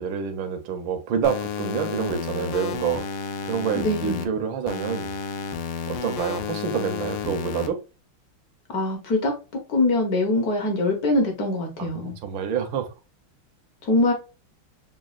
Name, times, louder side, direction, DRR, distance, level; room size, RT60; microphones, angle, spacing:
voice 1, 0.0-3.0 3.5-5.1 5.9-7.8 12.0-12.9, right 7 dB, 75° right, 1.4 m, -27 dB
sound 1, 1.2-4.2 4.7-7.7, left 6 dB, 80° left, 1.5 m, -31 dB
voice 2, 3.8-4.3 8.7-9.3 9.7-12.1 13.8-14.1, left 2 dB, 60° left, 1.1 m, -23 dB
6.1 x 2.3 x 2.3 m
omnidirectional pair, 2.3 m